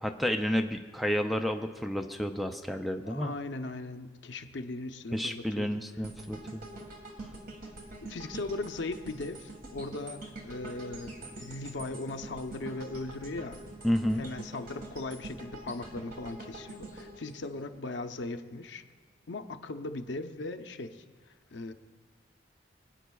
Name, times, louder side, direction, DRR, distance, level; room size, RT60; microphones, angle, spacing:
voice 1, 0.0-3.3 5.1-6.7 13.8-14.3, equal, ahead, 6 dB, 0.4 m, -30 dB
voice 2, 3.1-5.7 8.0-13.6 14.1-18.8 19.3-21.0 21.5-21.7, left 2 dB, 75° left, 7 dB, 0.6 m, -38 dB
sound 1, 6.0-18.2 18.6-18.8, right 2 dB, 50° right, 1.7 m, -45 dB
23.5 x 9.0 x 2.3 m, 1.5 s
head